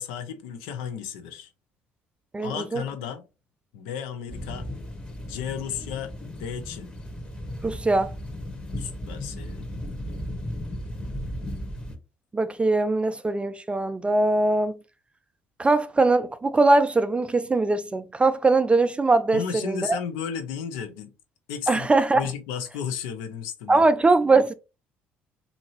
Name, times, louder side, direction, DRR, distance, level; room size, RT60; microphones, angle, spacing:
voice 1, 0.0-1.5 2.4-3.2 3.7-4.7 5.3-6.9 8.8-9.7 19.3-21.1 21.5-23.8, left 8 dB, 80° left, 0.5 m, -34 dB
voice 2, 2.3-2.8 7.6-8.1 12.3-14.7 15.6-19.9 21.7-22.2 23.7-24.5, right 3 dB, 20° right, 0.3 m, -21 dB
sound 1, 4.3-12.0, left 1 dB, 20° left, 0.9 m, -35 dB
2.8 x 2.6 x 2.9 m
hypercardioid pair, 60°, 6 cm